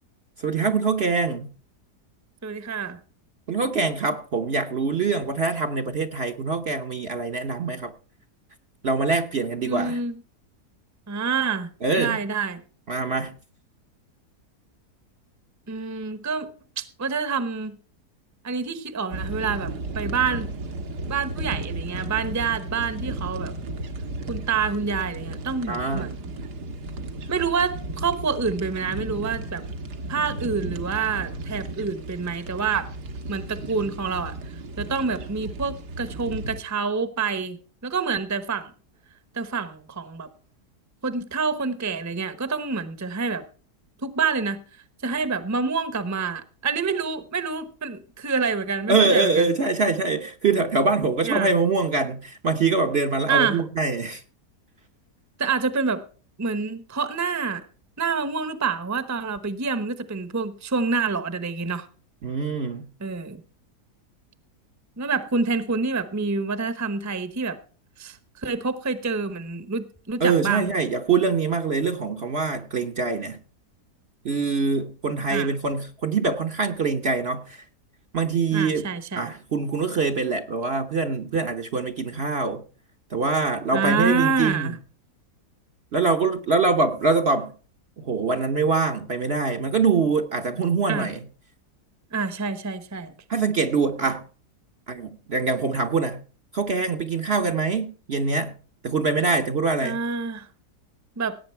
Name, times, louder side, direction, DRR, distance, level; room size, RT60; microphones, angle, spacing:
voice 1, 0.4-1.5 3.5-7.9 8.8-10.0 11.8-12.2 12.9-13.3 25.7-26.1 48.9-54.2 62.2-62.9 70.2-73.4 74.2-77.6 78.1-78.9 79.2-82.6 83.1-84.7 85.9-87.5 88.0-91.2 93.3-94.2 94.9-96.2 96.5-98.5 98.8-100.0, right 4 dB, 45° right, 1.0 m, -24 dB
voice 2, 2.4-3.0 9.7-10.2 11.1-11.7 12.0-12.6 15.7-16.5 16.8-17.8 18.4-20.5 21.1-23.5 24.3-26.3 27.3-29.6 30.1-32.9 33.3-38.7 39.3-40.3 41.0-43.4 44.0-49.5 51.2-51.5 53.3-53.6 55.4-56.0 56.4-57.6 58.0-61.9 63.0-63.4 65.0-67.6 68.0-70.7 75.3-75.5 78.5-79.3 83.7-84.8 90.9-91.1 92.1-93.1 99.8-100.5 101.2-101.4, right 5 dB, 15° right, 0.8 m, -27 dB
sound 1, 19.1-36.6, right 2 dB, 80° right, 1.9 m, -34 dB
17.5 x 8.7 x 4.5 m
omnidirectional pair, 1.7 m